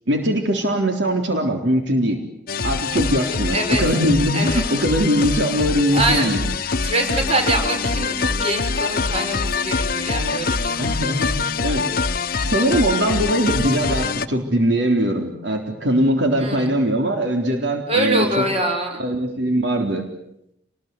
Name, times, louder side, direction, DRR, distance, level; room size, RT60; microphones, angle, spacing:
voice 1, 0.1-2.2 2.6-6.4 10.8-11.8 12.4-18.4 19.0-20.0, right 1 dB, 75° right, 4 dB, 3.8 m, -21 dB
sound 1, 2.5-14.3, left 4 dB, 55° left, 1.0 m, -24 dB
voice 2, 3.5-3.8 4.3-4.6 5.9-6.3 6.8-10.9 16.4-16.7 17.9-19.0, right 2 dB, 35° right, 5 dB, 6.1 m, -24 dB
29.0 x 20.5 x 9.5 m, 0.79 s
head